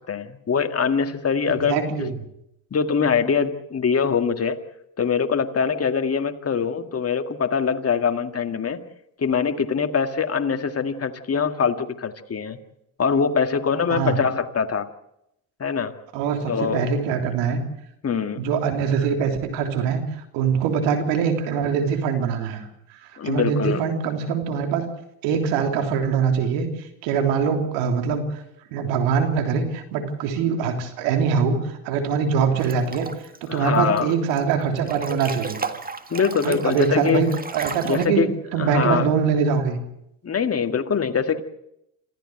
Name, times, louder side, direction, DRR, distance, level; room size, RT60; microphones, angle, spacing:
voice 1, 0.1-2.1 2.7-4.6 5.0-8.8 9.2-12.6 13.0-14.9 15.6-15.9 16.5-16.9 18.0-18.5 23.2-23.9 33.5-34.2 36.1-37.2 37.8-39.1 40.2-41.4, left 6 dB, 35° left, 7 dB, 2.0 m, -23 dB
voice 2, 1.5-2.1 13.9-14.2 16.1-17.6 18.3-20.0 20.3-22.7 23.2-24.8 25.2-26.7 27.0-28.4 28.7-33.1 33.4-35.6 36.4-37.3 37.5-38.2 38.5-39.8, right 6 dB, 80° right, 5 dB, 3.4 m, -23 dB
Breathing / Bathtub (filling or washing) / Splash splatter, 32.6-33.4 33.7-34.4 34.8-38.1, right 4 dB, 20° right, 1.8 m, -34 dB
26.5 x 14.5 x 7.9 m, 0.80 s
supercardioid pair, 75°, 43 cm